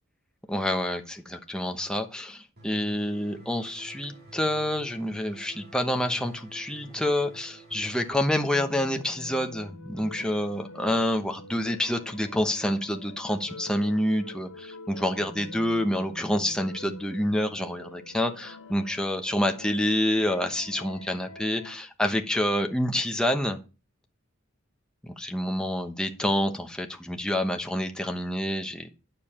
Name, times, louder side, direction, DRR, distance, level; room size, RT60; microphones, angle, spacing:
voice 1, 0.5-23.6 25.2-28.9, left 1 dB, 5° left, 1.0 m, -28 dB
sound 1, 2.6-8.1, right 2 dB, 50° right, 2.6 m, -48 dB
sound 2, 8.5-21.8, left 2 dB, 75° left, 1.7 m, -45 dB
9.5 x 6.9 x 4.4 m
head